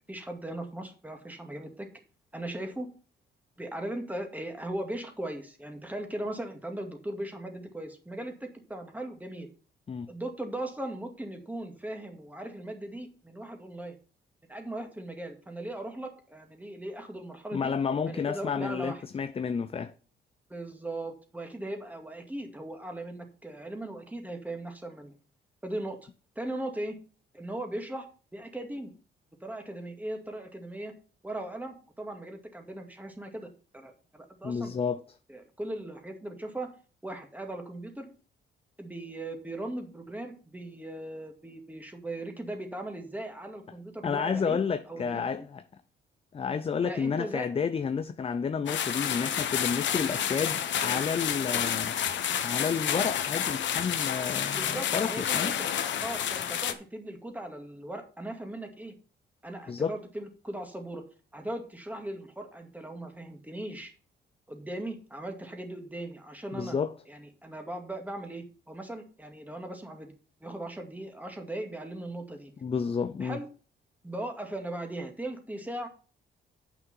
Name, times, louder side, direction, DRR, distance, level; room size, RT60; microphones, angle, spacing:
voice 1, 0.1-1.9 2.3-2.9 3.6-9.5 10.1-14.0 14.5-17.7 18.0-19.0 20.5-25.1 25.6-26.0 26.4-27.0 27.3-28.9 29.4-30.9 31.2-34.7 35.3-36.7 37.0-38.1 38.8-44.6 44.9-45.5 46.8-47.5 54.5-58.9 59.4-61.0 61.3-63.9 64.5-66.8 67.1-70.1 70.4-72.5 73.2-73.5 74.0-75.9, right 1 dB, 10° right, 2.1 m, -38 dB
voice 2, 17.5-19.9 34.4-35.0 44.0-45.6 46.3-52.0 52.4-55.5 59.7-60.0 66.5-66.9 72.6-73.4, left 6 dB, 30° left, 0.5 m, -31 dB
sound 1, 48.7-56.7, left 9 dB, 65° left, 1.0 m, -30 dB
8.4 x 6.0 x 5.5 m
cardioid pair, 90°, 20 cm